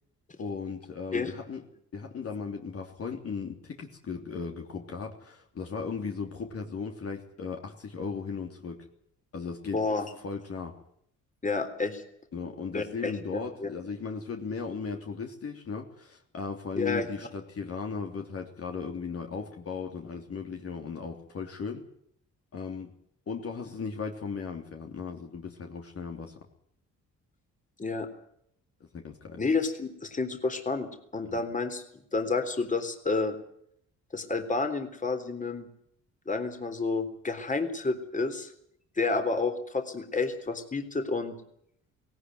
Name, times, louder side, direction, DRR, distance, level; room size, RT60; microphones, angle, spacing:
voice 1, 0.4-1.6 1.9-8.9 9.3-9.8 10.2-10.8 12.3-21.8 22.5-22.9 23.3-26.4 28.9-29.4 31.3-31.4, left 5 dB, 50° left, 3 dB, 3.2 m, -37 dB
voice 2, 9.7-10.1 11.4-12.0 12.7-13.1 13.6-13.7 16.8-17.1 27.8-28.1 29.4-30.9 31.1-33.4 34.1-35.7 36.3-38.5 39.0-41.4, left 3 dB, 25° left, 8 dB, 3.7 m, -30 dB
18.5 x 18.0 x 9.4 m, 0.70 s
cardioid pair, 90°, 30 cm